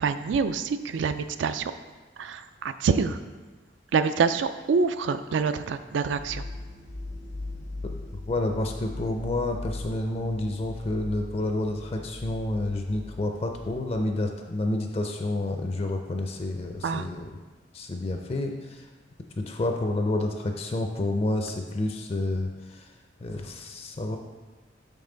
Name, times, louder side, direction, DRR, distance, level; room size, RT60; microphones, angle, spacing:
voice 1, 0.0-1.7 2.2-3.2 3.9-6.4 16.8-17.1, right 5 dB, 75° right, 11 dB, 0.3 m, -26 dB
sound 1, 6.2-14.0, left 2 dB, 75° left, 0.8 m, -39 dB
voice 2, 8.3-17.3 17.7-18.9 19.3-22.9 23.2-24.2, left 2 dB, 30° left, 4 dB, 0.4 m, -29 dB
5.4 x 5.2 x 3.8 m, 1.3 s
head